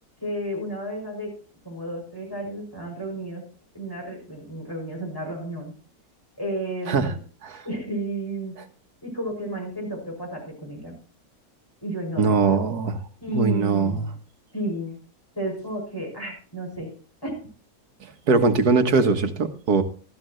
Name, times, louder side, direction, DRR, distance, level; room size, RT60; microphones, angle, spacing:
voice 1, 0.2-1.3 1.6-3.4 3.7-5.7 6.4-7.2 7.6-8.5 9.0-11.0 11.8-12.6 13.2-14.1 14.5-15.0 15.4-16.9 17.2-17.3, right 1 dB, 15° left, -1 dB, 6.7 m, -32 dB
voice 2, 12.2-13.0 13.3-14.0 18.3-19.8, right 4 dB, 90° right, 6 dB, 1.9 m, -21 dB
14.0 x 14.0 x 3.2 m, 0.41 s
omnidirectional pair, 1.6 m